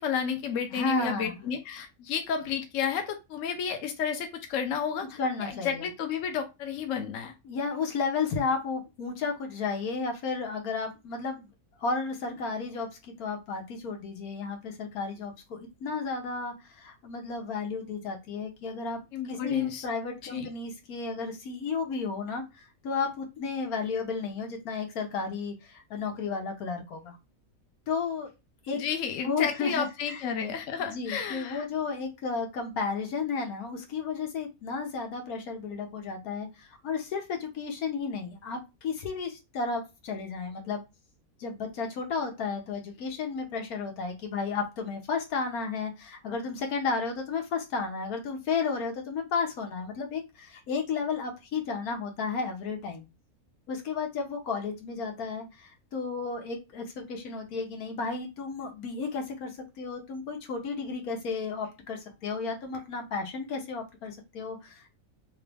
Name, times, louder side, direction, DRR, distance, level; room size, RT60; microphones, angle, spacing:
voice 1, 0.0-7.3 19.1-19.9 20.3-20.5 28.8-31.6, left 7 dB, 65° left, 5 dB, 1.0 m, -31 dB
voice 2, 0.7-1.4 5.2-5.9 7.4-11.5 11.8-27.2 27.9-28.3 28.6-28.8 29.2-30.2 30.8-40.8 41.4-53.0 53.7-64.9, left 4 dB, 85° left, 3 dB, 1.4 m, -33 dB
3.2 x 3.0 x 3.4 m, 0.25 s
omnidirectional pair, 1.5 m